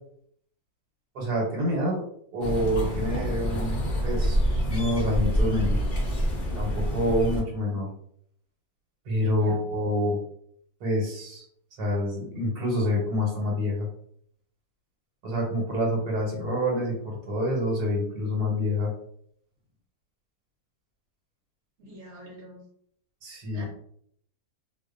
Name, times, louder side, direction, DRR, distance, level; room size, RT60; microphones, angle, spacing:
voice 1, 1.1-2.0 2.3-5.8 6.6-7.9 9.1-10.2 10.8-11.5 11.8-13.9 15.2-18.9 23.2-23.7, left 1 dB, 90° right, -2 dB, 1.3 m, -27 dB
sound 1, 2.4-7.4, equal, 65° left, 0.4 m, -27 dB
voice 2, 9.3-9.6 21.8-22.6 23.5-23.6, right 1 dB, 60° right, -3 dB, 0.9 m, -44 dB
2.5 x 2.2 x 2.4 m, 0.66 s
omnidirectional pair, 1.6 m